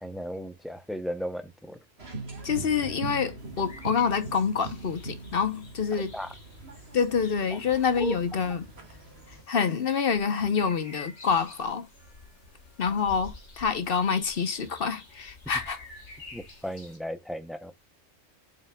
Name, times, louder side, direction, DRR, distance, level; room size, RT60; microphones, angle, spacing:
voice 1, 0.0-1.8 5.9-6.3 8.0-8.1 16.3-17.7, equal, ahead, 0.5 m, -35 dB
sound 1, 2.0-9.4, right 3 dB, 60° right, 2.0 m, -41 dB
voice 2, 2.4-6.2 6.9-8.7 9.5-11.9 12.8-15.8, left 6 dB, 55° left, 1.0 m, -27 dB
sound 2, 3.4-17.0, left 3 dB, 75° left, 2.0 m, -50 dB
7.7 x 6.3 x 2.3 m
omnidirectional pair, 1.2 m